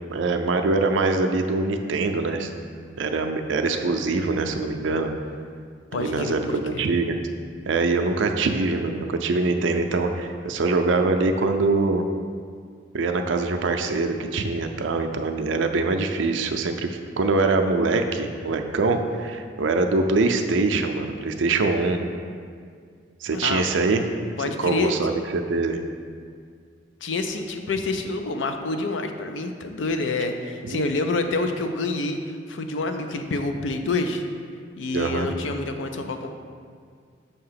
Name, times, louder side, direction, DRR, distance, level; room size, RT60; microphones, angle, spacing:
voice 1, 0.1-2.5 3.0-5.1 5.9-7.2 7.7-12.0 12.9-22.0 23.2-24.0 24.6-25.8 30.6-30.9 34.9-35.3, right 3 dB, 80° right, 5 dB, 0.5 m, -23 dB
voice 2, 5.9-6.9 23.3-23.6 24.4-24.9 27.0-34.2 34.8-36.3, left 3 dB, 80° left, 6 dB, 0.5 m, -27 dB
6.6 x 2.8 x 5.6 m, 2.1 s
head